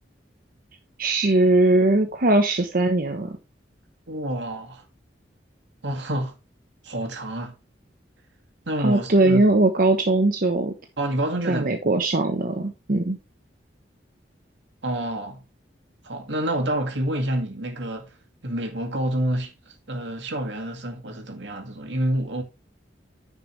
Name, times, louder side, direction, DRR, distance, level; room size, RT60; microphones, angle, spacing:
voice 1, 1.0-3.4 8.8-10.7 11.5-13.2, right 2 dB, 50° right, 1.1 m, -20 dB
voice 2, 4.1-4.9 5.8-6.3 6.8-7.5 8.7-9.6 11.0-11.8 14.8-15.4 16.0-18.2 18.4-22.4, right 1 dB, 80° right, 2.2 m, -28 dB
10.0 x 6.7 x 3.3 m
head